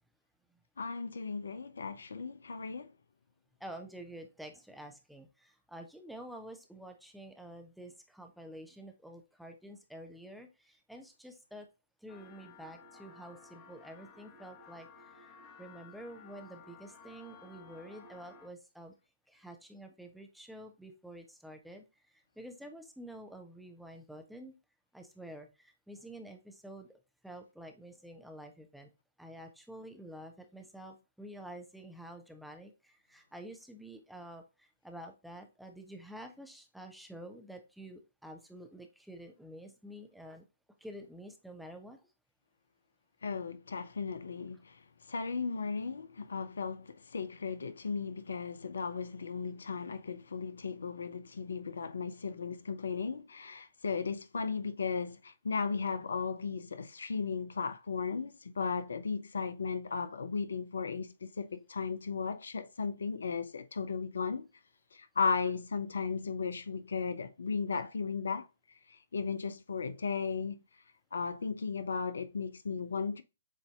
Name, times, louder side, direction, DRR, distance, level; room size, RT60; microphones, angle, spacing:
voice 1, 0.8-2.9 43.2-44.8 45.1-64.5 64.9-68.5 68.9-70.6 71.1-73.2, left 5 dB, 70° left, 0.5 m, -36 dB
voice 2, 3.6-11.7 12.0-15.3 15.6-18.9 19.3-21.9 22.4-24.5 24.9-26.9 27.2-28.9 29.2-40.4 40.8-42.0, right 1 dB, ahead, 0.6 m, -49 dB
sound 1, 12.1-18.5, left 4 dB, 25° left, 1.1 m, -55 dB
7.2 x 2.7 x 2.3 m
figure-of-eight pair, 130°, 0 cm